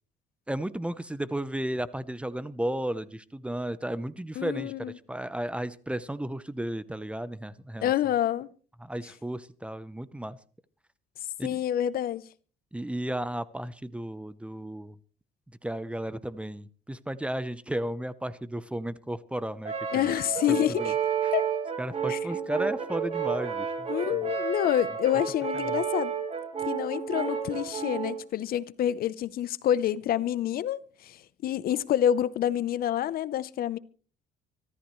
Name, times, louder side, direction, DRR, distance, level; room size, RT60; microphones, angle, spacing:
voice 1, 0.5-7.9 8.8-10.4 11.4-11.6 12.7-15.0 15.6-20.1 20.8-20.9 21.2-21.3 21.8-24.4 25.6-25.7, right 1 dB, 5° right, 0.8 m, -34 dB
voice 2, 4.4-4.9 7.8-8.5 11.4-12.3 19.9-20.9 21.3-21.4 22.1-22.2 23.9-26.1 26.6-33.8, left 11 dB, 60° left, 0.8 m, -27 dB
Brass instrument, 19.6-28.2, right 7 dB, 35° right, 3.6 m, -31 dB
25.0 x 13.5 x 3.2 m
cardioid pair, 110°, 17 cm